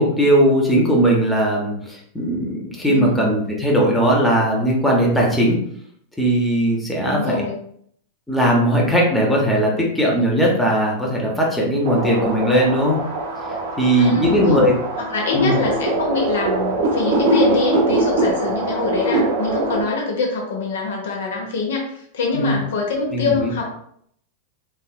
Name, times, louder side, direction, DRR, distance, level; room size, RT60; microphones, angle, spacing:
voice 1, 0.0-5.6 6.2-7.4 8.3-13.0 13.8-14.7 15.3-15.6 22.3-22.5 23.1-23.5, equal, 5° left, -3 dB, 0.8 m, -18 dB
voice 2, 2.8-3.3 7.0-7.6 14.0-14.6 15.0-23.7, left 3 dB, 60° left, 0 dB, 0.7 m, -24 dB
sound 1, 11.9-19.8, right 2 dB, 55° right, 0.6 m, -22 dB
3.3 x 2.6 x 2.3 m, 0.67 s
figure-of-eight pair, 90°, 0 cm